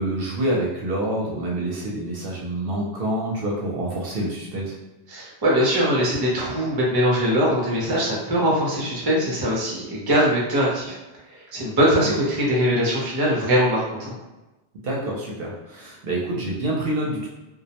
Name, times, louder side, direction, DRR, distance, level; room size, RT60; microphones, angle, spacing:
voice 1, 0.0-4.8 14.8-17.3, right 1 dB, 65° right, -3 dB, 0.7 m, -27 dB
voice 2, 5.1-11.0 11.5-14.1, equal, 30° right, -5 dB, 0.5 m, -21 dB
2.2 x 2.0 x 2.8 m, 1.0 s
omnidirectional pair, 1.1 m